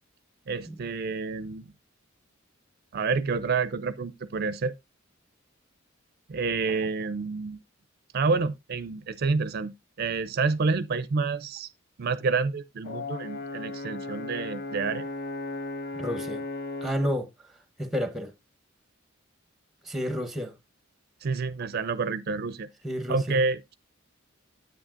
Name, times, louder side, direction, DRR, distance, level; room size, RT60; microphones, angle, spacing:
voice 1, 0.5-1.7 2.9-4.7 6.3-7.6 8.1-11.7 12.0-15.1 21.2-22.7 23.1-23.7, right 4 dB, 50° right, 0.4 m, -28 dB
Brass instrument, 12.8-17.1, left 2 dB, 55° left, 1.2 m, -36 dB
voice 2, 16.0-16.4 16.8-17.3 17.8-18.3 19.9-20.5 22.8-23.4, equal, ahead, 1.0 m, -30 dB
9.8 x 8.0 x 2.5 m
head